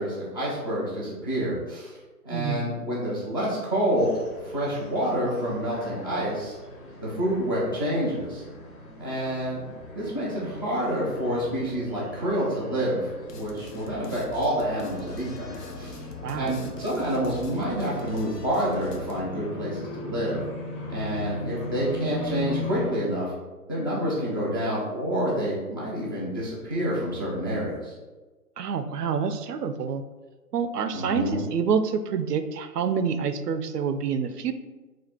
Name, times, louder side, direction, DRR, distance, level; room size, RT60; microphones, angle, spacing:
voice 1, 0.0-1.9 2.2-4.1 4.4-6.6 7.0-8.4 9.0-9.6 9.9-13.0 13.3-16.0 16.3-20.4 20.9-23.3 23.7-27.9 30.9-31.4, equal, 15° left, -8 dB, 0.4 m, -28 dB
voice 2, 2.3-2.6 16.2-16.6 28.6-30.0 30.5-34.5, right 6 dB, 80° right, 9 dB, 0.6 m, -27 dB
sound 1, 4.0-22.9, left 2 dB, 30° left, 1.3 m, -39 dB
sound 2, 13.3-19.2, left 2 dB, 80° left, 0.8 m, -44 dB
4.1 x 2.4 x 4.6 m, 1.2 s
hypercardioid pair, 145°, 47 cm